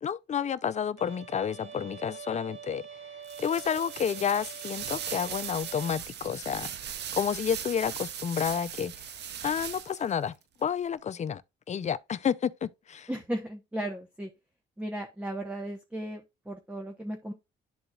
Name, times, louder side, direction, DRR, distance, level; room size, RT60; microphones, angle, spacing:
voice 1, 0.0-2.8 3.4-6.7 7.1-9.1 9.4-10.3 10.6-11.4 11.7-13.1, left 8 dB, 35° left, 0.5 m, -30 dB
Bowed string instrument, 1.0-6.0, right 7 dB, 85° right, 1.7 m, -46 dB
sound 1, 3.2-10.1, right 9 dB, 60° right, 0.6 m, -39 dB
voice 2, 13.1-14.3 14.8-17.3, right 1 dB, 5° right, 0.9 m, -36 dB
11.5 x 3.9 x 2.3 m
cardioid pair, 90°, 20 cm